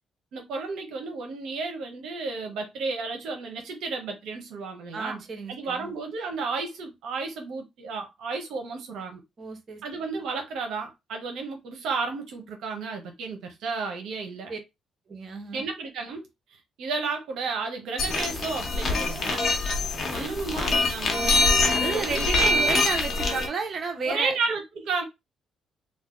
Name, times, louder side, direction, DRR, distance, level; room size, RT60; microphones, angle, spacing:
voice 1, 0.3-5.2 5.5-9.2 9.8-14.5 15.5-16.3 16.8-19.4 20.1-21.3 21.8-22.4 24.0-25.0, right 4 dB, 80° right, 0.8 m, -32 dB
voice 2, 4.9-5.9 9.4-9.8 14.5-14.6 15.1-15.6 21.2-21.4 21.7-24.3, right 4 dB, 45° right, 0.9 m, -32 dB
sound 1, 18.0-23.5, left 2 dB, 45° left, 0.9 m, -24 dB
2.7 x 2.2 x 3.5 m
cardioid pair, 90°, 0 cm